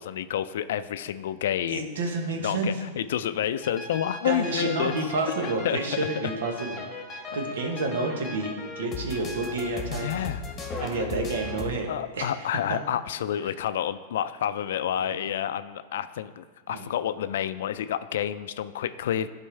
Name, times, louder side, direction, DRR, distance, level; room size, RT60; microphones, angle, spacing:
voice 1, 0.0-1.9 2.4-4.9 5.6-5.8 7.3-7.4 9.9-10.4 11.0-11.1 11.9-19.3, left 10 dB, 75° left, 13 dB, 0.3 m, -29 dB
voice 2, 1.7-2.7 4.2-10.1 10.8-12.3 12.7-12.8 15.0-15.3 16.7-16.9, right 3 dB, 85° right, 3 dB, 1.2 m, -30 dB
sound 1, 3.6-11.7, left 3 dB, 20° left, 1.3 m, -37 dB
11.0 x 4.4 x 3.3 m, 1.4 s
hypercardioid pair, 130°, 0 cm